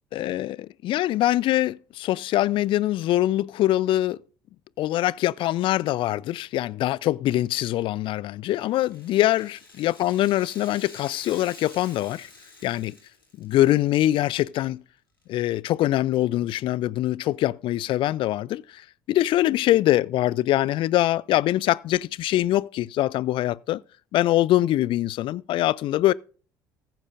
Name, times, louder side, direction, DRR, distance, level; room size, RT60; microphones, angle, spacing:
voice 1, 0.1-4.2 4.8-12.3 12.6-13.0 13.4-14.8 15.3-18.8 19.1-23.8 24.1-26.1, left 14 dB, 50° left, 0.4 m, -23 dB
Rattle (instrument), 8.7-14.0 14.3-14.4 15.2-15.3, left 3 dB, 85° left, 2.9 m, -48 dB
15.0 x 9.0 x 2.5 m
figure-of-eight pair, 55°, 11 cm